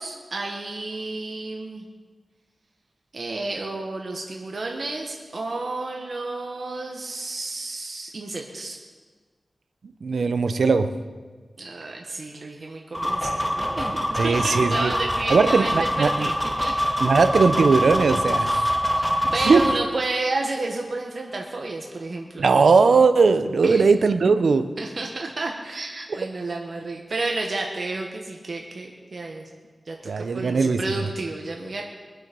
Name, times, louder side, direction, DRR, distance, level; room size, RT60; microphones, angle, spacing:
voice 1, 0.0-1.8 3.1-8.8 11.6-16.3 16.6-16.7 18.9-19.1 19.3-22.4 23.6-23.9 24.8-29.5 29.9-31.8, right 2 dB, 65° right, 1 dB, 1.5 m, -31 dB
voice 2, 10.0-10.9 14.2-14.9 15.3-16.3 17.0-18.7 19.4-19.6 22.4-24.7 30.1-30.8, right 4 dB, 90° right, 10 dB, 0.8 m, -19 dB
sound 1, 12.9-19.7, equal, 5° left, 1.8 m, -25 dB
23.0 x 8.0 x 5.4 m, 1.4 s
wide cardioid pair, 65°, 0 cm